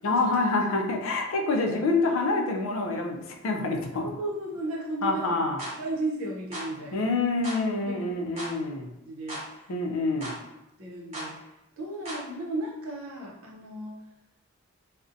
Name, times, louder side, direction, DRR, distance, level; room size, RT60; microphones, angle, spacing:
voice 1, 0.0-4.1 5.0-5.6 6.9-8.9 9.7-10.4, left 3 dB, 70° left, 2 dB, 0.4 m, -27 dB
voice 2, 4.0-5.3 5.7-7.1 7.8-8.2 9.1-9.7 10.8-14.0, right 2 dB, 70° right, -3 dB, 0.6 m, -35 dB
sound 1, 5.6-5.8 6.5-6.7 7.4-7.6 8.4-8.5 9.3-9.5 10.2-10.4 11.1-11.3 12.1-12.2, right 1 dB, 30° right, 1.1 m, -36 dB
2.6 x 2.1 x 2.5 m, 0.92 s
head